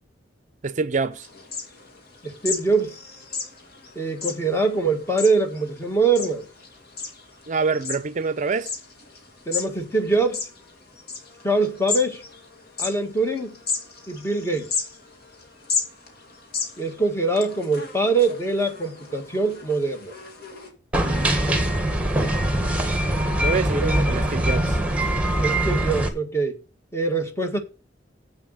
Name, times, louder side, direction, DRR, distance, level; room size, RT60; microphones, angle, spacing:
voice 1, 0.6-1.3 7.5-8.7 21.0-21.3 23.4-24.8, right 4 dB, 40° right, 0.5 m, -26 dB
sound 1, 1.1-20.7, left 5 dB, 60° left, 2.6 m, -35 dB
voice 2, 2.2-3.0 4.0-6.5 9.5-10.5 11.4-12.2 12.8-13.6 14.1-14.7 16.8-20.1 23.8-24.0 25.4-26.6 26.9-27.6, right 3 dB, 15° left, 1.8 m, -23 dB
sound 2, 20.9-26.1, right 1 dB, 5° right, 1.6 m, -22 dB
7.9 x 6.9 x 6.5 m
head